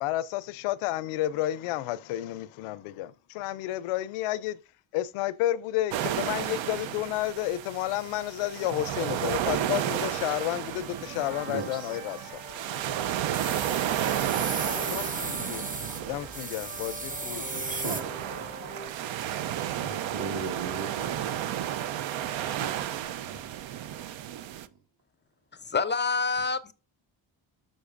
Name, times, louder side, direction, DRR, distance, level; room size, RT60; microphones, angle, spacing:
voice 1, 0.0-4.6 4.9-12.4 14.6-15.7 16.1-17.6, left 14 dB, 90° left, 0.6 m, -31 dB
sound 1, 5.9-24.7, right 11 dB, 70° right, 0.6 m, -33 dB
sound 2, 9.4-18.9, right 3 dB, 85° right, 2.2 m, -44 dB
voice 2, 11.5-12.0 17.7-18.2 19.7-21.3 22.4-23.7, right 4 dB, 45° right, 1.6 m, -38 dB
sound 3, 12.8-18.5, right 3 dB, 15° right, 0.7 m, -37 dB
voice 3, 25.5-26.7, left 4 dB, 25° left, 0.4 m, -27 dB
7.2 x 6.2 x 2.5 m
supercardioid pair, 70°, 49 cm